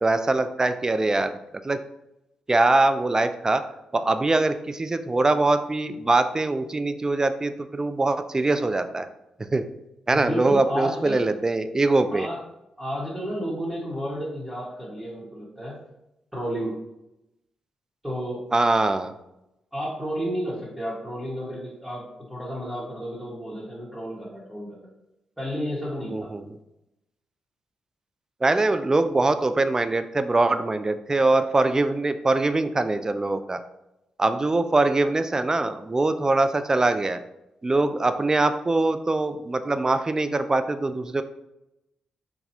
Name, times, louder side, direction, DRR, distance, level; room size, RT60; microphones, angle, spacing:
voice 1, 0.0-1.3 1.6-1.8 2.5-3.6 3.9-9.1 9.4-9.7 10.1-12.3 18.5-19.1 26.1-26.4 28.4-33.6 34.2-37.2 37.6-41.2, right 2 dB, 25° right, 10 dB, 0.3 m, -23 dB
voice 2, 10.1-11.2 12.1-12.4 12.8-15.8 16.3-16.8 18.0-18.4 19.7-22.0 22.3-24.9 25.4-26.3, equal, 5° right, -8 dB, 1.4 m, -31 dB
3.9 x 2.3 x 2.8 m, 0.88 s
supercardioid pair, 45°, 2 cm